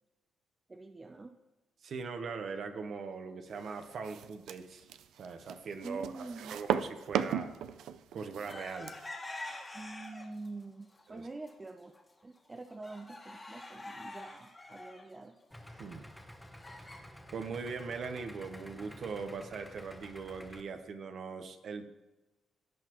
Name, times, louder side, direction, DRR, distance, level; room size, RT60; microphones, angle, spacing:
voice 1, 0.7-1.4 5.8-6.6 9.7-11.9 12.2-15.4 15.7-15.8, right 3 dB, 25° right, 6 dB, 0.5 m, -46 dB
voice 2, 1.8-4.9 5.2-6.1 6.5-7.5 8.1-8.9 11.1-11.3 15.7-16.0 16.8-17.1 17.3-21.9, right 5 dB, 60° right, 7 dB, 0.9 m, -41 dB
sound 1, 3.8-9.1, right 9 dB, 80° right, 0.4 m, -36 dB
sound 2, 8.5-10.5 10.9-11.5 11.9-12.0 12.4-17.0, left 2 dB, 20° left, 1.6 m, -46 dB
Idling, 15.5-20.6, left 1 dB, ahead, 1.0 m, -51 dB
17.0 x 6.1 x 3.0 m, 1.1 s
cardioid pair, 90°, 0 cm